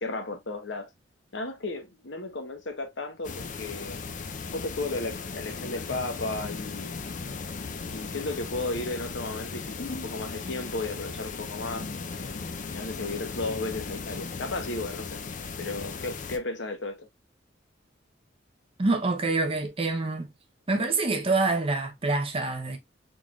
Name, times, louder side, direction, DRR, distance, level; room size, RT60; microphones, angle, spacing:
voice 1, 0.0-0.9 1.3-4.0 4.5-6.9 7.9-11.9 12.1-12.4 12.7-15.2 15.6-17.1, left 2 dB, 65° left, 0.9 m, -34 dB
sound 1, 3.2-16.4, left 4 dB, 40° left, 0.5 m, -37 dB
voice 2, 18.8-20.3 20.7-22.8, right 3 dB, 30° right, 0.7 m, -26 dB
3.8 x 3.4 x 2.3 m
head